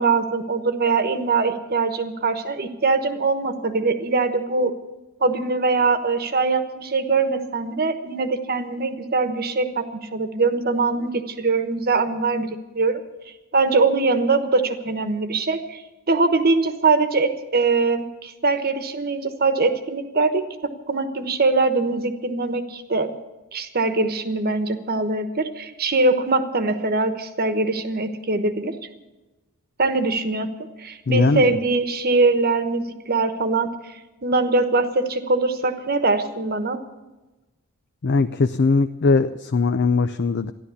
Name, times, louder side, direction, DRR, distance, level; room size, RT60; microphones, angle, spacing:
voice 1, 0.0-4.7 5.2-13.0 13.5-15.8 16.1-20.5 20.9-23.1 23.5-28.7 29.8-30.5 30.8-36.8, right 3 dB, 45° right, 9 dB, 1.2 m, -22 dB
voice 2, 31.1-31.6 38.0-40.5, left 4 dB, 50° left, 10 dB, 0.5 m, -20 dB
13.5 x 11.5 x 8.3 m, 1.1 s
head